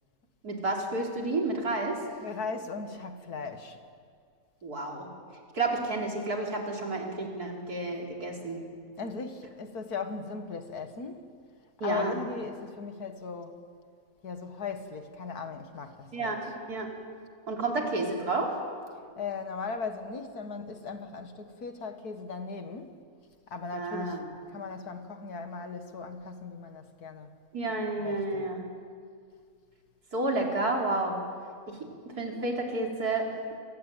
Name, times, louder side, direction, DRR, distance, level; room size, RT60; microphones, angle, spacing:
voice 1, 0.4-2.0 4.6-5.1 5.5-8.6 11.8-12.1 16.1-16.4 16.7-16.9 17.5-18.6 23.7-24.2 27.5-28.6 30.1-31.2 31.7-31.9 32.2-33.2, right 2 dB, 85° right, 4.3 m, -30 dB
voice 2, 2.2-3.8 7.2-7.3 9.0-11.3 11.8-13.6 14.2-16.5 19.2-23.0 23.5-27.3 28.0-28.5, left 5 dB, 90° left, 2.2 m, -38 dB
27.0 x 20.0 x 9.1 m
omnidirectional pair, 1.6 m